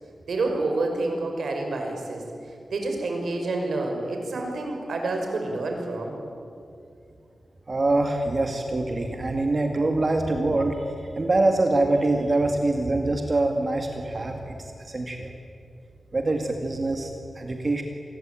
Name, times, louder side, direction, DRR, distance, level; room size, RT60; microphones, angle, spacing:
voice 1, 0.3-6.2, right 2 dB, 80° right, 3 dB, 5.6 m, -28 dB
voice 2, 7.7-10.8 11.2-15.3 16.1-17.8, right 2 dB, 35° right, 3 dB, 2.2 m, -24 dB
28.5 x 20.5 x 9.2 m, 2.6 s
wide cardioid pair, 130°, 0 cm